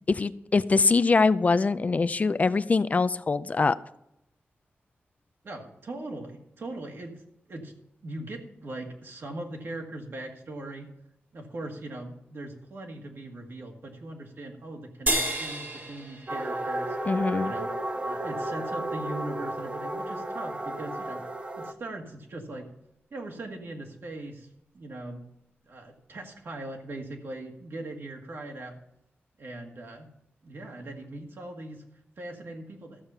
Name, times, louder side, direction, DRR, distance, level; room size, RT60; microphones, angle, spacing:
voice 1, 0.1-3.8 17.1-17.5, left 4 dB, 35° left, 14 dB, 0.4 m, -23 dB
voice 2, 5.4-7.7 8.0-10.9 11.3-17.0 17.4-21.2 21.6-22.7 23.1-24.5 24.7-25.2 25.7-28.8 29.4-30.1 30.4-31.8 32.2-33.0, right 2 dB, 65° right, 2 dB, 1.9 m, -40 dB
sound 1, 15.1-17.6, right 1 dB, 50° right, 2.0 m, -32 dB
sound 2, 16.3-21.7, right 1 dB, 25° right, 0.7 m, -33 dB
13.5 x 7.3 x 5.6 m, 0.82 s
wide cardioid pair, 130°, 4 cm